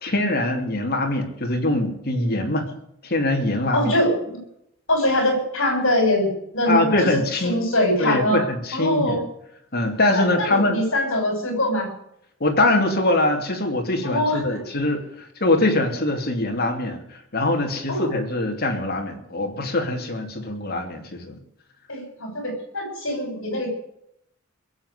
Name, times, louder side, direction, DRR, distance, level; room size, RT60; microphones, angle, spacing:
voice 1, 0.0-2.7 3.0-4.0 6.7-7.6 8.0-9.2 9.7-10.8 12.4-17.0 17.3-21.4, left 2 dB, 50° left, 2 dB, 3.0 m, -23 dB
voice 2, 3.7-4.4 4.9-8.4 8.7-9.2 10.2-11.9 14.0-14.6 17.9-18.1 21.9-23.7, left 1 dB, 65° left, 3 dB, 7.2 m, -23 dB
21.5 x 7.9 x 8.2 m, 0.75 s
head